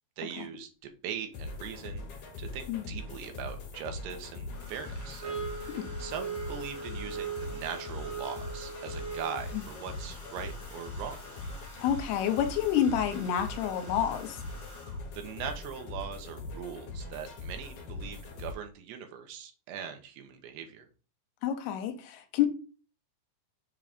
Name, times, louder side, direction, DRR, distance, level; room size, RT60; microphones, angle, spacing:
voice 1, 0.2-11.2 15.1-20.9, right 7 dB, 80° right, 3.0 m, -41 dB
Domestic sounds home sounds, 0.8-0.9 2.4-3.0 4.5-15.2 16.4-16.7 17.0-17.3, equal, 15° left, 2.4 m, -50 dB
sound 1, 1.3-18.5, left 2 dB, 55° left, 2.6 m, -42 dB
sound 2, 5.2-9.6, right 5 dB, 50° right, 3.1 m, -39 dB
voice 2, 11.8-14.4 21.4-22.5, left 9 dB, 80° left, 2.8 m, -28 dB
7.1 x 3.8 x 5.1 m
omnidirectional pair, 4.8 m